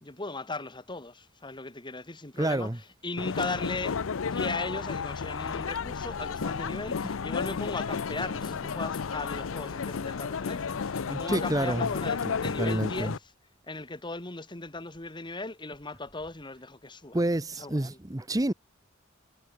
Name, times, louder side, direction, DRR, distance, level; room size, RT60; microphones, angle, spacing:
voice 1, 0.0-4.0 4.3-13.3 13.6-17.2 17.6-18.0, left 3 dB, 25° left, 1.9 m, -37 dB
voice 2, 2.4-2.8 11.1-11.9 12.4-13.1 17.1-18.5, right 1 dB, 20° right, 0.8 m, -28 dB
sound 1, 3.2-13.2, left 5 dB, 85° left, 0.6 m, -32 dB
head